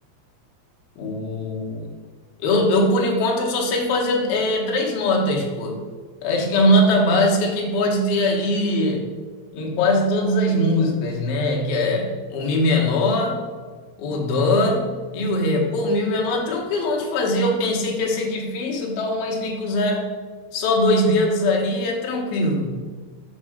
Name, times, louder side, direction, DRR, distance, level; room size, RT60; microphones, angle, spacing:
voice 1, 1.0-1.9 2.4-5.8 6.2-9.1 9.5-13.4 14.0-14.9 15.1-20.1 20.5-22.8, left 1 dB, 70° left, -1 dB, 2.4 m, -21 dB
7.4 x 5.1 x 4.9 m, 1.5 s
omnidirectional pair, 5.8 m